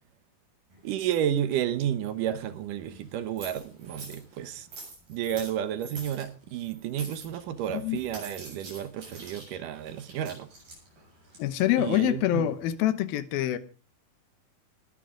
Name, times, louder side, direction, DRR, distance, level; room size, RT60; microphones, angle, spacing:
sound 1, 0.7-12.7, right 2 dB, 55° right, 8.8 m, -48 dB
voice 1, 0.8-4.7 5.1-10.5 11.8-12.5, right 10 dB, 70° right, 2.5 m, -31 dB
voice 2, 11.4-13.6, left 13 dB, 90° left, 2.8 m, -25 dB
20.0 x 11.5 x 3.8 m
omnidirectional pair, 4.1 m